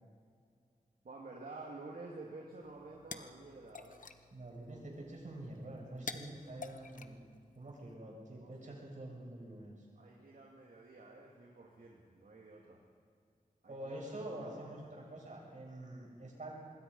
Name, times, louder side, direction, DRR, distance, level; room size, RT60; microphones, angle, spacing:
voice 1, 1.0-4.1 8.4-8.7 10.0-12.8 13.6-14.6, right 3 dB, 80° right, -2 dB, 2.6 m, -51 dB
sound 1, 2.6-7.9, left 4 dB, 65° left, 1.1 m, -50 dB
voice 2, 4.3-7.2 7.6-9.8 13.7-16.5, right 1 dB, 60° right, -2 dB, 7.1 m, -46 dB
26.0 x 21.5 x 5.6 m, 2.2 s
wide cardioid pair, 95°, 14 cm